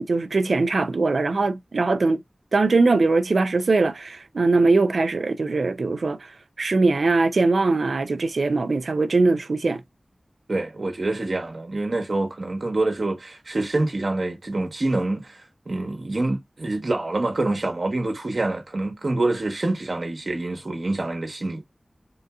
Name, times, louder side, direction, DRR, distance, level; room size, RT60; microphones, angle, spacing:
voice 1, 0.0-2.2 2.5-6.3 6.6-9.8, right 3 dB, 90° right, 0.4 m, -21 dB
voice 2, 10.5-15.4 15.7-21.8, right 2 dB, 65° right, 1.1 m, -26 dB
3.7 x 2.7 x 2.2 m
wide cardioid pair, 50°, 0 cm